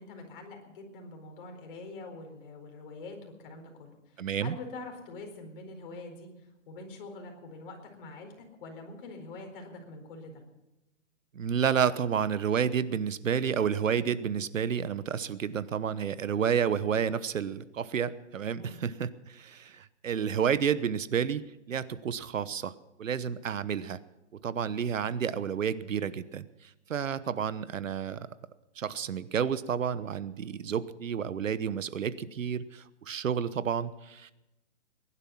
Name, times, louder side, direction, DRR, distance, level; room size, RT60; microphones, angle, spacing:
voice 1, 0.0-10.4 18.6-18.8, left 3 dB, 45° left, 3 dB, 4.5 m, -45 dB
voice 2, 4.2-4.6 11.3-22.7 23.0-24.0 24.4-26.4 26.9-28.3 28.8-34.3, right 7 dB, 80° right, 15 dB, 1.1 m, -30 dB
21.0 x 11.5 x 5.8 m, 0.95 s
hypercardioid pair, 150°, 38 cm